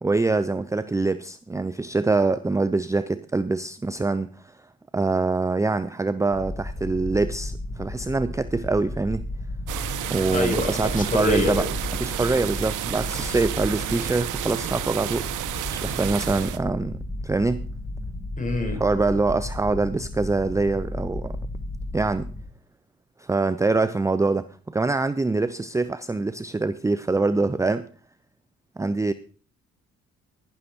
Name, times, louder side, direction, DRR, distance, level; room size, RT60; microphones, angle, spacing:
voice 1, 0.0-4.3 4.9-9.3 10.1-11.7 12.0-15.3 15.7-17.7 18.8-21.4 21.9-22.3 23.2-27.9 28.8-29.1, right 3 dB, 10° right, 14 dB, 0.5 m, -24 dB
sound 1, 6.3-22.4, left 1 dB, 5° left, 2.7 m, -34 dB
sound 2, 9.7-16.6, right 12 dB, 85° right, 1.1 m, -31 dB
voice 2, 10.3-11.7 18.4-18.8, left 1 dB, 25° left, 3 dB, 4.6 m, -26 dB
11.0 x 11.0 x 4.4 m, 0.40 s
cardioid pair, 90°, 30 cm